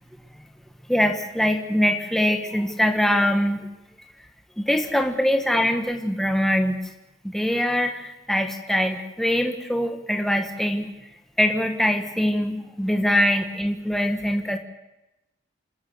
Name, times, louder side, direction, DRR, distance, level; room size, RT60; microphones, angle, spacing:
voice 1, 0.9-3.7 4.6-6.8 7.2-10.9 11.4-14.6, equal, ahead, 4 dB, 1.5 m, -23 dB
27.0 x 13.5 x 8.0 m, 0.97 s
head